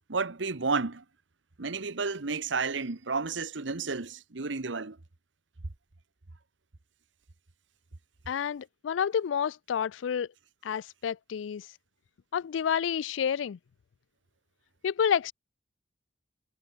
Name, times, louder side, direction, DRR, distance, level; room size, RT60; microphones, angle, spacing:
voice 1, 0.1-1.0 1.6-5.0, right 4 dB, 85° right, 1.2 m, -31 dB
voice 2, 8.3-10.3 10.6-11.7 12.3-13.6 14.8-15.3, left 8 dB, 90° left, 0.4 m, -29 dB
head